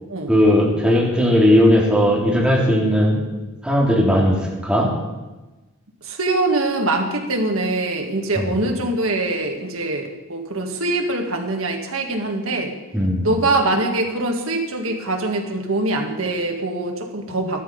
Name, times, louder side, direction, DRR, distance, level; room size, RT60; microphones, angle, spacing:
voice 1, 0.3-3.2 3.6-4.4 4.6-4.9 8.3-8.5 12.9-13.3, equal, 5° right, -4 dB, 3.3 m, -17 dB
voice 2, 6.0-12.7 13.2-17.6, right 2 dB, 75° right, 3 dB, 1.9 m, -23 dB
13.0 x 13.0 x 5.4 m, 1.1 s
head